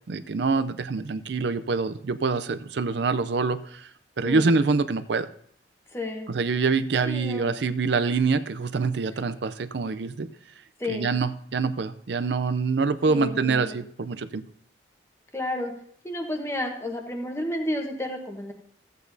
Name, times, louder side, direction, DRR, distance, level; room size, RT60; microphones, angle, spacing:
voice 1, 0.1-3.9 4.2-5.3 6.3-10.3 10.9-14.4, right 4 dB, 65° right, 12 dB, 0.5 m, -25 dB
voice 2, 4.2-4.5 5.9-6.3 7.0-7.5 10.8-11.1 13.0-13.8 15.3-15.7 16.0-18.5, left 1 dB, 15° left, 3 dB, 1.0 m, -31 dB
14.5 x 8.1 x 2.7 m, 0.62 s
head